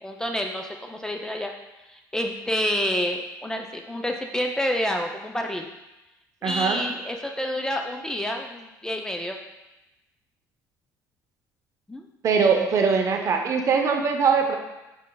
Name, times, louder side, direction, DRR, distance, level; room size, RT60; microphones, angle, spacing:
voice 1, 0.0-1.5 1.9-5.7 6.4-9.4 11.9-12.0, equal, 10° left, 2 dB, 0.4 m, -28 dB
voice 2, 6.4-6.8 12.2-14.6, right 5 dB, 45° right, 3 dB, 0.6 m, -21 dB
5.1 x 3.7 x 2.2 m, 0.99 s
supercardioid pair, 95°, 7 cm